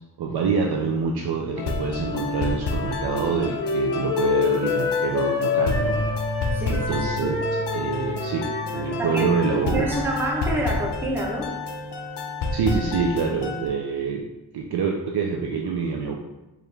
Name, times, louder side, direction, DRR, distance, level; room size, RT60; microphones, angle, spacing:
voice 1, 0.2-6.0 6.7-7.4 7.7-8.5 8.7-9.9 12.5-14.2 14.5-16.1, right 5 dB, 75° right, 1 dB, 0.5 m, -26 dB
sound 1, 1.6-13.7, left 3 dB, 80° left, 0.5 m, -30 dB
Wind instrument woodwind instrument, 2.1-10.2, left 4 dB, 30° left, 0.7 m, -28 dB
voice 2, 6.5-7.0 9.0-9.2 9.6-11.5, right 1 dB, 5° right, -3 dB, 0.7 m, -27 dB
4.6 x 2.5 x 3.2 m, 1.0 s
wide cardioid pair, 115°, 40 cm